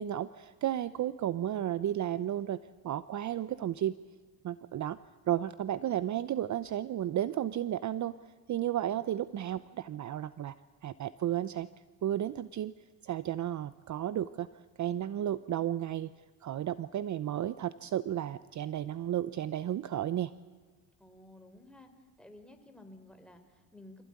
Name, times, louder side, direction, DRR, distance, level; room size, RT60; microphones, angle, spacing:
voice 1, 0.0-2.6 2.8-3.9 4.4-5.0 5.3-8.2 8.5-10.5 10.8-11.7 12.0-12.7 13.0-14.5 14.8-16.1 16.4-20.3, right 11 dB, 45° right, 15 dB, 0.7 m, -33 dB
voice 2, 21.0-21.9 22.2-24.0, left 1 dB, ahead, 5 dB, 3.6 m, -53 dB
25.5 x 16.0 x 9.7 m, 1.5 s
cardioid pair, 100°, 42 cm